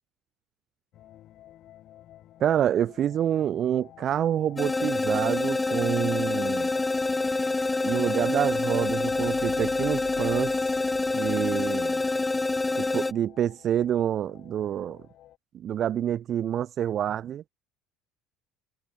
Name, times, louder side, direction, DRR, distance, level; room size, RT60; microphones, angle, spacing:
sound 1, 0.9-15.4, left 13 dB, 50° left, 7.9 m, -51 dB
voice 1, 2.4-6.7 7.8-10.5 11.1-12.0 12.8-15.0 15.5-17.4, right 10 dB, 45° right, 1.8 m, -27 dB
sound 2, 4.6-13.1, left 2 dB, 15° left, 1.3 m, -26 dB
sound 3, 7.5-12.3, left 20 dB, 65° left, 3.3 m, -49 dB
figure-of-eight pair, 60°, 0 cm